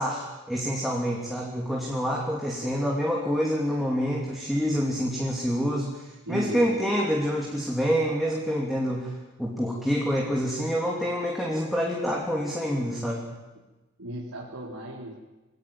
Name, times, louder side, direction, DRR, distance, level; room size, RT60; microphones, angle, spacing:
voice 1, 0.0-9.1 9.4-13.3, equal, ahead, -3 dB, 3.0 m, -27 dB
voice 2, 6.3-6.7 14.0-15.2, right 1 dB, 80° right, -6 dB, 4.4 m, -36 dB
23.5 x 18.5 x 9.0 m, 1.1 s
head